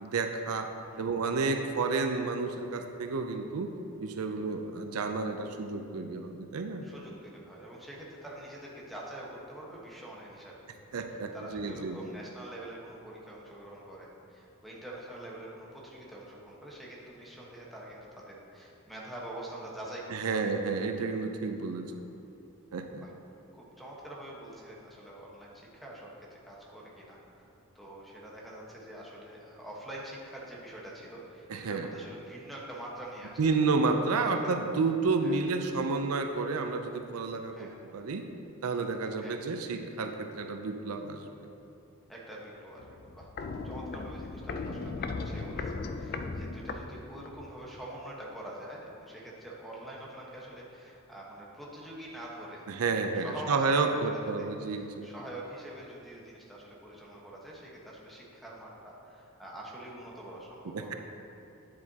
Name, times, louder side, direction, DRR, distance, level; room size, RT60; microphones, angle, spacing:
voice 1, 0.0-0.7 1.0-6.9 10.9-12.0 20.1-21.9 22.7-23.0 31.5-31.9 33.4-38.3 38.6-41.2 52.7-55.1 60.7-60.9, right 4 dB, 80° right, 5 dB, 0.5 m, -31 dB
voice 2, 6.8-10.6 11.1-20.4 23.0-23.1 23.5-27.5 27.7-34.5 35.2-35.3 37.5-37.7 39.2-39.4 42.1-43.3 43.6-60.9, right 1 dB, ahead, -4 dB, 1.2 m, -45 dB
Walk footsteps, 42.8-47.5 47.8-47.9, left 3 dB, 45° left, 0.4 m, -37 dB
9.4 x 7.5 x 2.8 m, 2.9 s
head